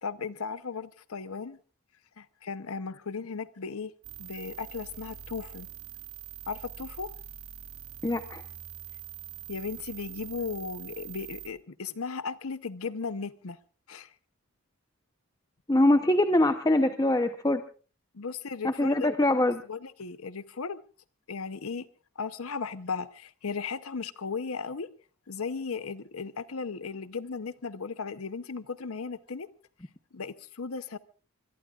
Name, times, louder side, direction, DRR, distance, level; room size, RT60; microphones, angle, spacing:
voice 1, 0.0-1.6 2.2-3.9 4.2-5.7 6.5-7.1 9.5-13.6 13.9-14.1 18.1-19.1 19.7-20.8 21.3-21.9 22.2-24.9 25.3-29.5 30.1-31.0, left 5 dB, 80° left, 0.8 m, -36 dB
sound 1, 4.0-11.5, right 10 dB, 75° right, 2.9 m, -44 dB
voice 2, 8.0-8.4 15.7-17.6 18.6-19.6, left 1 dB, 15° left, 0.8 m, -23 dB
25.0 x 22.0 x 2.4 m
head